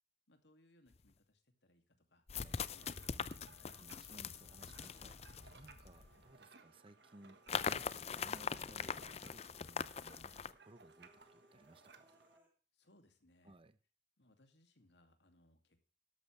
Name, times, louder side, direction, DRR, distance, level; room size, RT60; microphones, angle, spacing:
voice 1, 0.3-1.8 2.1-3.8 12.7-13.6 14.2-15.8, left 1 dB, 70° left, 2.4 m, -70 dB
sound 1, 0.9-1.0 2.3-6.1 7.5-10.5, left 6 dB, 35° left, 0.5 m, -42 dB
sound 2, 2.5-12.4, right 4 dB, 65° right, 1.4 m, -63 dB
voice 2, 3.8-12.2 13.4-13.8, right 1 dB, 30° right, 0.7 m, -61 dB
Human voice, 5.4-5.7 6.0-9.2 9.5-9.7 10.0-12.5, right 1 dB, 10° right, 3.6 m, -72 dB
13.0 x 11.5 x 3.3 m
head